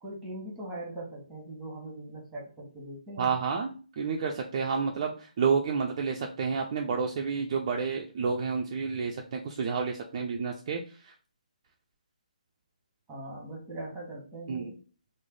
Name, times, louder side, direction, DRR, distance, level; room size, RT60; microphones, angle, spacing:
voice 1, 0.0-3.3 13.1-14.8, right 1 dB, 5° right, -2 dB, 1.2 m, -41 dB
voice 2, 3.2-11.1 14.5-14.7, right 5 dB, 40° right, 1 dB, 0.4 m, -30 dB
3.1 x 2.0 x 3.7 m, 0.38 s
figure-of-eight pair, 145°, 4 cm